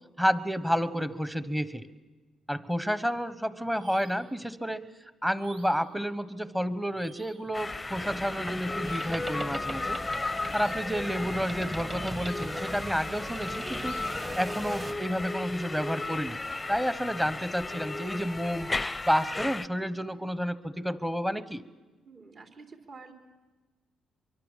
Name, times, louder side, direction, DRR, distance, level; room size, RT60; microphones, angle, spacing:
voice 1, 0.2-1.9 2.5-4.8 5.2-10.0 10.5-14.0 14.4-16.4 16.7-18.7 19.1-21.6, equal, 5° right, 13 dB, 1.1 m, -30 dB
sound 1, 3.8-4.3 5.4-5.9 7.0-7.5 8.8-9.3 10.4-11.0 12.1-12.7 13.7-14.3, right 4 dB, 80° right, 3.6 m, -54 dB
sound 2, 7.5-19.7, left 2 dB, 20° left, 0.7 m, -35 dB
sound 3, 7.9-14.9, right 2 dB, 25° right, 1.8 m, -39 dB
voice 2, 22.0-23.1, right 4 dB, 50° right, 2 dB, 3.8 m, -49 dB
24.5 x 24.0 x 7.4 m, 1.2 s
cardioid pair, 90°, 0 cm